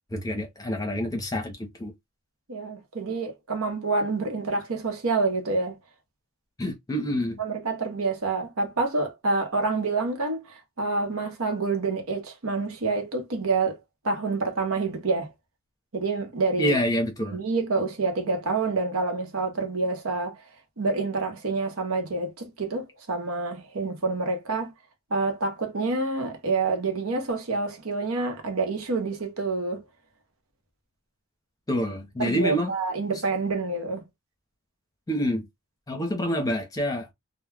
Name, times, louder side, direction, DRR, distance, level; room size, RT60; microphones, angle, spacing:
voice 1, 0.1-1.9 6.6-7.4 16.6-17.4 31.7-32.7 35.1-35.5 35.9-37.1, equal, 15° left, 0.8 m, -27 dB
voice 2, 2.5-5.7 7.4-10.4 10.8-13.8 14.0-15.3 15.9-16.7 17.3-20.4 20.8-24.7 25.1-29.8 32.2-34.0, right 3 dB, 85° right, 0.8 m, -27 dB
2.3 x 2.1 x 3.3 m
head